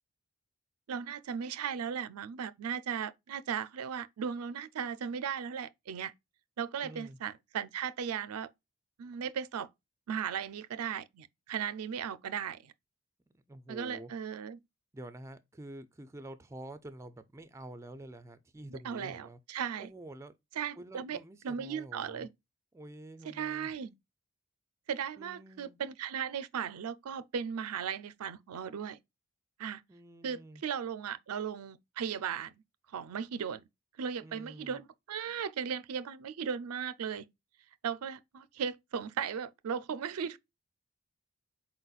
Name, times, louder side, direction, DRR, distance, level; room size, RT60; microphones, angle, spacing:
voice 1, 0.9-6.1 6.6-8.5 9.0-9.7 10.1-12.7 13.7-14.6 18.7-19.9 20.6-21.2 21.4-22.3 23.3-23.9 24.9-29.0 29.6-29.8 30.2-32.5 32.9-33.6 34.0-37.2 37.8-40.4, right 7 dB, 80° right, 0.4 m, -37 dB
voice 2, 6.8-7.2 13.3-14.1 14.9-19.4 19.8-20.4 20.8-22.3 22.7-24.0 25.2-25.8 29.9-30.6 34.2-34.8, right 1 dB, 15° right, 0.3 m, -48 dB
4.4 x 4.0 x 2.3 m
head